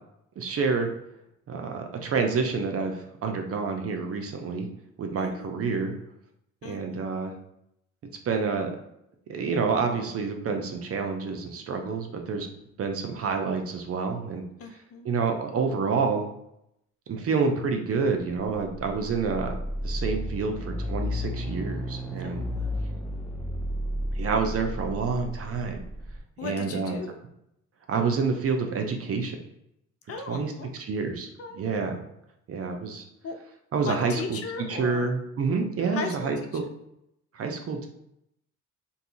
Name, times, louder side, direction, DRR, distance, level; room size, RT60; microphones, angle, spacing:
voice 1, 0.4-0.9 1.5-4.7 5.0-5.9 6.6-7.3 8.3-8.7 9.3-12.5 12.8-14.4 15.0-16.2 17.1-19.6 19.8-22.4 24.2-25.8 26.4-26.9 27.9-29.4 30.3-31.3 31.5-32.0 32.5-33.0 33.7-34.4 34.7-36.6 37.3-37.9, right 5 dB, 50° right, 4 dB, 0.6 m, -28 dB
voice 2, 5.2-5.6 6.6-7.1 14.6-15.1 22.2-22.9 26.4-27.2 30.1-30.7 31.4-31.6 33.2-33.3 33.8-35.1 35.8-36.5, left 4 dB, 50° left, 5 dB, 0.6 m, -37 dB
sound 1, 18.5-26.2, left 1 dB, 5° left, 0.5 m, -32 dB
2.7 x 2.3 x 3.9 m, 0.79 s
cardioid pair, 90°, 30 cm